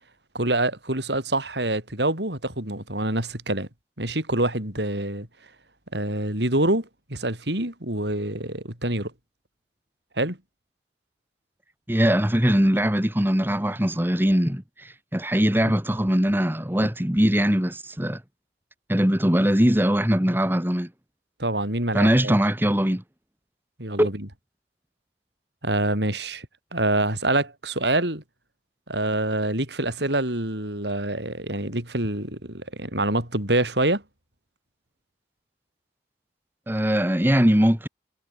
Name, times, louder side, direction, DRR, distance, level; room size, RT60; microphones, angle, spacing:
voice 1, 0.3-3.7 4.0-5.3 5.9-9.1 10.2-10.4 21.4-22.3 23.8-24.3 25.6-26.5 26.7-28.2 28.9-34.0, right 1 dB, 75° right, 7.8 m, -26 dB
voice 2, 11.9-18.2 18.9-20.9 21.9-23.0 24.0-24.1 36.7-37.9, equal, 10° right, 1.8 m, -21 dB
head